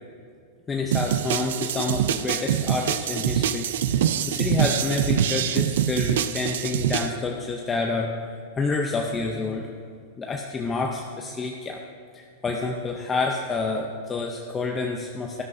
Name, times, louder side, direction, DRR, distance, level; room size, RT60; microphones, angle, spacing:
voice 1, 0.7-8.3 8.6-9.7 10.2-11.8 12.1-15.4, left 3 dB, 15° left, 1 dB, 0.7 m, -28 dB
sound 1, 0.9-7.1, right 10 dB, 75° right, 0.4 m, -24 dB
13.5 x 12.5 x 2.7 m, 2.2 s
supercardioid pair, 150°, 0 cm